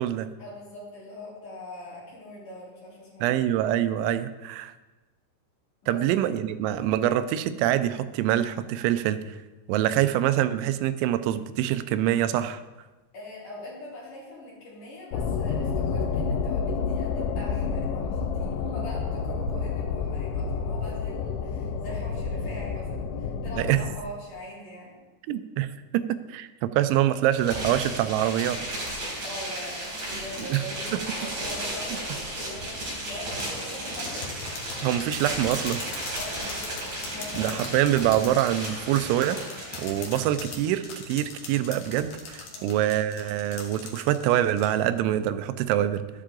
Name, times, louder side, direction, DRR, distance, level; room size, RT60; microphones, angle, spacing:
voice 1, 0.4-3.4 5.8-6.0 13.1-25.0 29.2-34.3 36.1-36.7 37.1-37.6 42.4-42.8, left 1 dB, 45° left, -7 dB, 4.8 m, -41 dB
voice 2, 3.2-4.7 5.9-9.4 9.7-12.6 23.6-23.8 25.3-28.6 30.4-30.6 30.9-31.0 34.8-35.9 37.4-46.0, right 12 dB, 90° right, 12 dB, 3.0 m, -25 dB
sound 1, 15.1-24.0, left 5 dB, 80° left, 2.4 m, -29 dB
sound 2, 27.4-40.2, right 1 dB, 40° right, 4.9 m, -34 dB
sound 3, 33.4-44.7, left 5 dB, 65° left, 2.9 m, -40 dB
12.5 x 10.0 x 3.8 m, 1.2 s
omnidirectional pair, 5.3 m